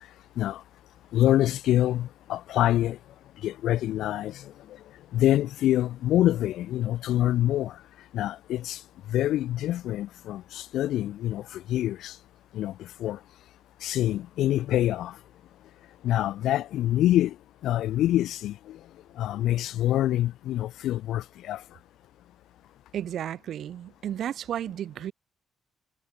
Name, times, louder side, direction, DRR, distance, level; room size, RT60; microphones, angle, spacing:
voice 1, 1.1-3.0 3.4-4.5 5.1-7.8 8.1-8.8 9.1-12.2 12.5-13.2 13.8-15.2 16.0-17.4 17.6-18.8 19.2-21.6, left 13 dB, 80° left, 0.3 m, -26 dB
voice 2, 22.9-25.1, right 10 dB, 70° right, 0.7 m, -33 dB
cardioid pair, 90°, 0 cm